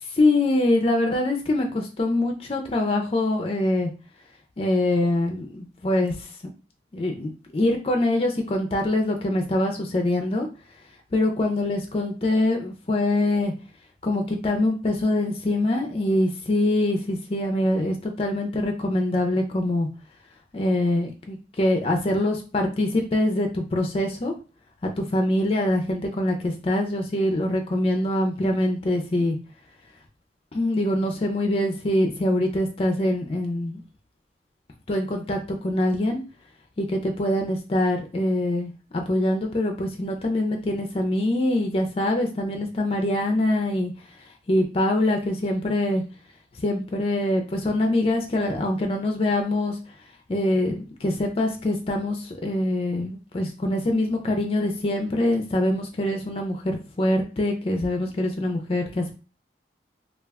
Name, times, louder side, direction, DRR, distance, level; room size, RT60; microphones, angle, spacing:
voice 1, 0.1-3.9 4.6-6.3 6.9-10.5 11.1-13.5 14.0-19.9 20.5-24.3 24.8-29.4 30.5-33.8 34.9-36.2 36.8-43.9 44.5-46.0 46.6-49.8 50.3-59.1, left 1 dB, 30° left, 3 dB, 0.4 m, -24 dB
2.3 x 2.2 x 3.4 m, 0.34 s
head